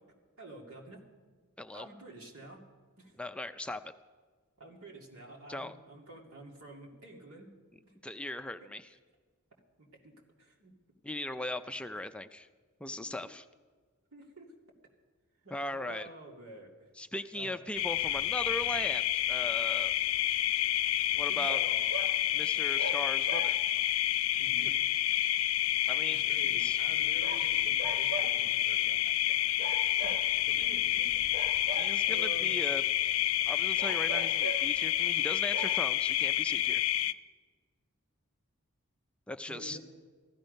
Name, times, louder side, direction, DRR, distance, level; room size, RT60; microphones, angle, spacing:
voice 1, 0.4-1.0 1.7-2.6 3.0-3.1 4.6-7.5 7.8-7.9 8.6-8.7 9.8-10.7 13.0-13.1 14.1-14.5 15.4-16.9 17.3-17.6 21.3-21.9 24.4-24.8 26.0-29.5 29.9-31.2 31.6-31.7 32.1-32.5 39.5-39.8, right 2 dB, 90° right, -1 dB, 2.6 m, -49 dB
voice 2, 3.2-3.9 5.5-5.7 8.0-8.9 11.0-12.5 12.8-13.5 15.5-16.1 17.0-19.9 21.1-21.6 22.3-23.6 25.9-26.8 31.7-32.8 33.5-36.8 39.3-39.8, left 1 dB, 5° left, 8 dB, 0.3 m, -39 dB
sound 1, 17.8-37.1, left 13 dB, 75° left, 0.4 m, -29 dB
sound 2, 21.4-22.2 22.8-23.9 27.2-28.5 29.6-30.7 31.3-32.3 33.8-34.8 35.2-35.3 35.5-35.8, right 2 dB, 40° right, 0.8 m, -41 dB
15.5 x 13.0 x 5.3 m, 1.5 s
head